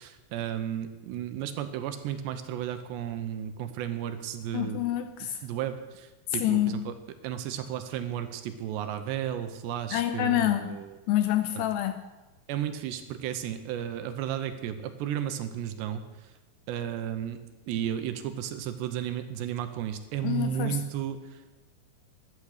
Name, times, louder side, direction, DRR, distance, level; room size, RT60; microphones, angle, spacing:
voice 1, 0.0-4.8 5.4-6.9 7.2-10.9 12.5-16.0 16.7-17.4 17.7-21.5, right 10 dB, 80° right, 9 dB, 3.0 m, -33 dB
voice 2, 4.5-5.4 6.4-6.9 9.9-10.8 11.1-12.0 20.2-20.8, left 12 dB, 80° left, 8 dB, 2.6 m, -27 dB
14.5 x 12.0 x 6.6 m, 1.1 s
omnidirectional pair, 5.2 m